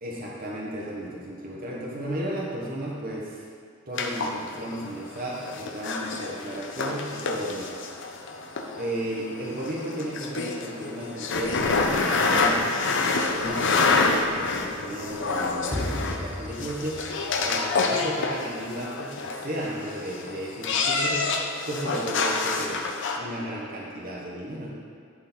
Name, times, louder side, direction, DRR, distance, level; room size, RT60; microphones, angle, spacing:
voice 1, 0.0-3.4 3.9-7.7 8.7-12.7 13.2-17.0 17.4-21.3 21.6-22.9 23.1-24.7, right 1 dB, 40° right, -4 dB, 1.2 m, -34 dB
sound 1, 4.0-23.2, left 3 dB, 60° left, 0.6 m, -27 dB
sound 2, 15.7-18.8, left 1 dB, 10° left, 0.3 m, -36 dB
10.5 x 3.9 x 4.4 m, 2.3 s
head